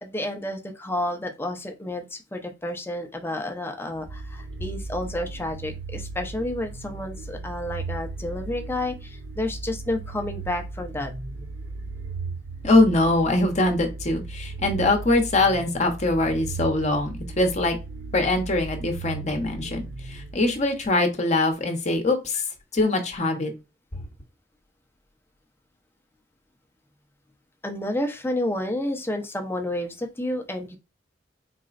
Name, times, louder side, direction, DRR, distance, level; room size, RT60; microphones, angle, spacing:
voice 1, 0.0-11.1 27.6-30.8, left 1 dB, 10° left, 4 dB, 0.7 m, -30 dB
sound 1, 4.0-20.9, right 3 dB, 85° right, 0.9 m, -36 dB
voice 2, 12.6-17.8 18.1-22.5 22.7-23.5 23.9-24.0, left 2 dB, 40° left, 4 dB, 0.9 m, -23 dB
4.1 x 3.0 x 2.5 m, 0.27 s
head